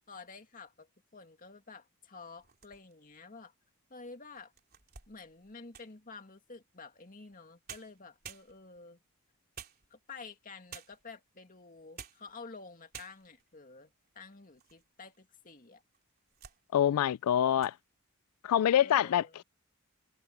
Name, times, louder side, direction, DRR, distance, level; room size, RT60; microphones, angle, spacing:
voice 1, 0.1-3.5 3.9-4.5 5.1-9.0 9.9-15.8 18.7-19.3, left 4 dB, 40° left, 2.2 m, -50 dB
sound 1, 2.4-3.1 3.7-3.8 4.4-6.0 7.3-7.4 7.7-8.9 9.5-10.2 10.7-11.2 11.8-12.3 12.6-12.7 12.9-13.5 14.0-14.8 15.1-15.2 15.9-16.6 17.0-17.2 17.5-17.8, right 7 dB, 45° right, 3.2 m, -51 dB
voice 2, 16.7-17.7 18.4-19.4, left 10 dB, 85° left, 0.3 m, -26 dB
head